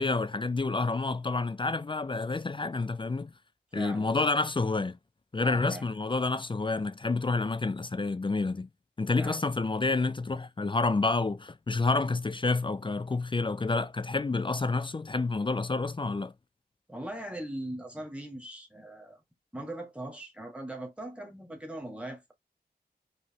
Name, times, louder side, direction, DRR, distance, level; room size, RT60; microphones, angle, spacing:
voice 1, 0.0-3.3 3.7-5.0 5.3-8.7 9.0-16.3, left 3 dB, 30° left, 0.4 m, -29 dB
voice 2, 3.7-4.1 5.4-5.8 9.2-9.4 16.9-19.2 19.5-22.3, right 1 dB, 5° right, 1.7 m, -40 dB
5.0 x 2.8 x 2.9 m
wide cardioid pair, 60°, 17 cm